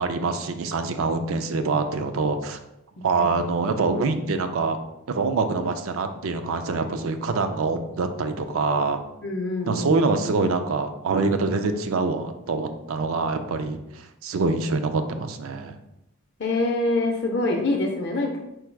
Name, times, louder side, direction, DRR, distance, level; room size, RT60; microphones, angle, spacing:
voice 1, 0.0-2.6 3.0-4.8 5.1-9.0 9.7-13.8 14.2-15.8, right 3 dB, 70° right, 7 dB, 0.4 m, -25 dB
voice 2, 9.2-10.2 16.4-18.4, left 2 dB, 50° left, 1 dB, 0.5 m, -25 dB
4.6 x 2.3 x 4.5 m, 0.88 s
head